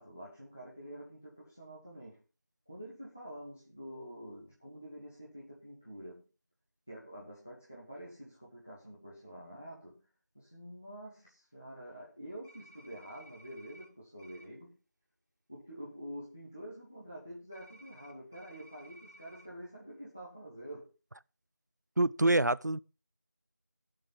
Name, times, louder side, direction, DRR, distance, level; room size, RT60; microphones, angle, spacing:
voice 1, 0.0-2.2 2.7-6.2 6.9-10.0 10.3-14.8 15.5-20.9, equal, 10° left, 0.7 m, -47 dB
sound 1, 12.4-13.9 14.2-14.4 17.5-19.5, right 1 dB, 10° right, 2.8 m, -57 dB
voice 2, 22.0-22.8, right 2 dB, 70° right, 0.7 m, -26 dB
15.0 x 6.6 x 5.6 m
figure-of-eight pair, 175°, 10 cm